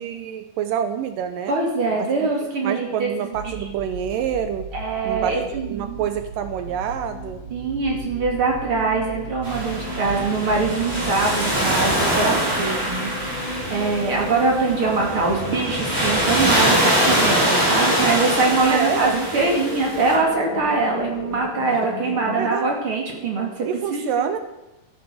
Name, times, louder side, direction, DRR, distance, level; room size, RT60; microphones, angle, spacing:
voice 1, 0.0-1.6 2.0-2.3 2.6-4.7 5.0-7.4 18.7-19.2 21.7-21.8 22.4-22.7 23.6-24.4, right 8 dB, 75° right, 8 dB, 2.2 m, -27 dB
voice 2, 1.5-3.1 3.4-3.6 4.7-6.0 7.5-24.2, right 3 dB, 40° right, -1 dB, 2.9 m, -23 dB
sound 1, 3.3-21.4, right 5 dB, 55° right, 2.7 m, -39 dB
sound 2, 6.7-22.5, left 4 dB, 65° left, 3.0 m, -34 dB
sound 3, 9.4-20.1, right 1 dB, 15° right, 4.3 m, -23 dB
13.5 x 9.5 x 6.3 m, 0.98 s
omnidirectional pair, 4.3 m